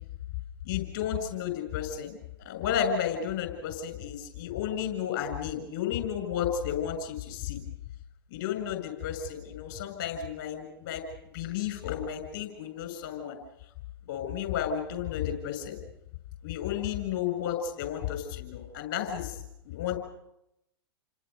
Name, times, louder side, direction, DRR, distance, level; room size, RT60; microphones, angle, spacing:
voice 1, 0.6-2.2 2.5-7.6 8.3-11.0 11.3-13.4 14.1-15.8 16.4-19.4 19.7-20.0, left 9 dB, 50° left, 7 dB, 7.3 m, -32 dB
29.5 x 26.0 x 5.4 m, 0.83 s
figure-of-eight pair, 100°, 13 cm